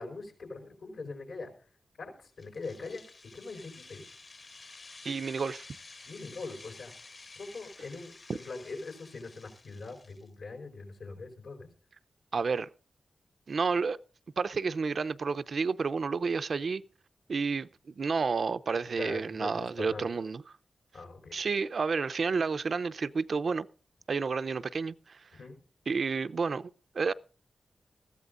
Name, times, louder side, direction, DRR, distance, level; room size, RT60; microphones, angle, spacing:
voice 1, 0.0-1.5 2.0-3.0 3.3-4.1 6.0-11.7 19.0-20.2 20.9-21.3 25.4-25.6, left 3 dB, 80° left, 4.7 m, -42 dB
sound 1, 2.4-10.3, left 3 dB, 40° left, 1.2 m, -51 dB
voice 2, 5.0-5.7 12.3-12.7 13.5-14.0 14.4-16.8 17.3-20.4 21.3-23.7 24.1-25.3 25.9-27.1, right 5 dB, 60° right, 0.5 m, -30 dB
20.0 x 14.5 x 2.5 m
wide cardioid pair, 145°, 0 cm